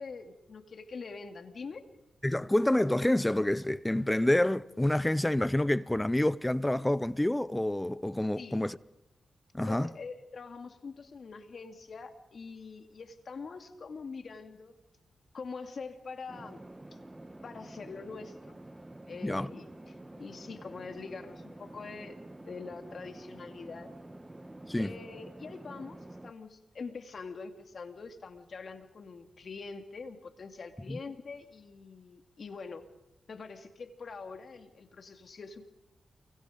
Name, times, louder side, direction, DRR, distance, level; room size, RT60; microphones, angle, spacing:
voice 1, 0.0-1.8 8.4-8.6 9.7-14.7 15.3-17.0 17.4-18.6 19.1-23.9 24.8-32.9 33.3-35.7, left 4 dB, 65° left, 2.7 m, -44 dB
voice 2, 2.2-8.8 9.5-9.9 19.2-19.5 24.7-25.0 30.9-31.0, left 1 dB, 15° left, 0.9 m, -28 dB
sound 1, 16.3-26.3, right 1 dB, 20° right, 1.6 m, -48 dB
29.0 x 24.0 x 5.3 m
supercardioid pair, 40°, 0 cm